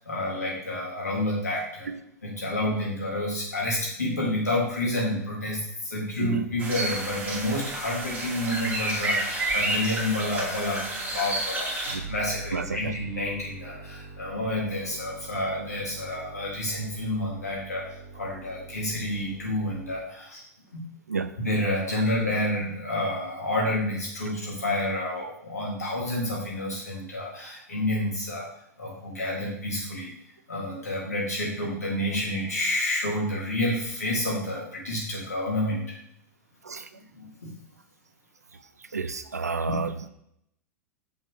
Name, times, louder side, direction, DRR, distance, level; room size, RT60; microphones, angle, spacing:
voice 1, 0.1-1.9 2.2-17.8 18.2-20.4 20.7-20.9 21.4-28.5 28.8-30.1 30.5-35.8 37.1-37.5 39.6-39.8, left 1 dB, 80° left, -3 dB, 2.5 m, -29 dB
sound 1, 6.6-11.9, right 1 dB, 20° right, 2.4 m, -30 dB
sound 2, 12.0-20.0, right 3 dB, 60° right, 1.6 m, -43 dB
voice 2, 12.5-12.9 21.1-21.3 21.9-22.0 36.6-36.9 38.9-40.1, right 4 dB, 80° right, 11 dB, 0.5 m, -31 dB
6.5 x 5.3 x 3.3 m, 0.74 s
figure-of-eight pair, 90°, 9 cm